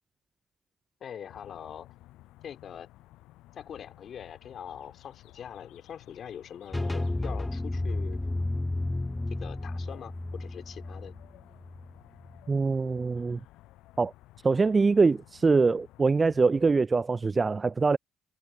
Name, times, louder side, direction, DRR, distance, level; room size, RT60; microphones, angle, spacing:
voice 1, 1.0-1.9 2.4-2.9 3.5-8.2 9.4-11.1, left 8 dB, 55° left, 2.7 m, -43 dB
sound 1, 1.3-16.8, left 17 dB, 75° left, 7.8 m, -55 dB
sound 2, 6.7-12.4, left 2 dB, 15° left, 1.3 m, -32 dB
voice 2, 12.5-13.4 14.0-14.1 14.4-18.0, right 4 dB, 35° right, 0.3 m, -23 dB
hypercardioid pair, 50°, 0 cm